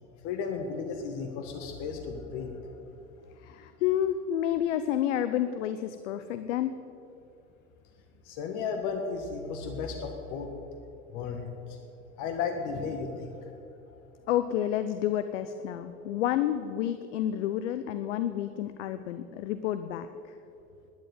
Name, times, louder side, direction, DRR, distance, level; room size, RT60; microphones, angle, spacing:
voice 1, 0.2-2.9 3.3-3.4 8.2-10.5 11.1-11.8 12.2-13.6, left 5 dB, 55° left, 4 dB, 1.7 m, -34 dB
voice 2, 3.4-6.7 14.3-20.3, left 11 dB, 75° left, 11 dB, 0.8 m, -30 dB
12.0 x 9.8 x 9.5 m, 2.7 s
hypercardioid pair, 85°, 36 cm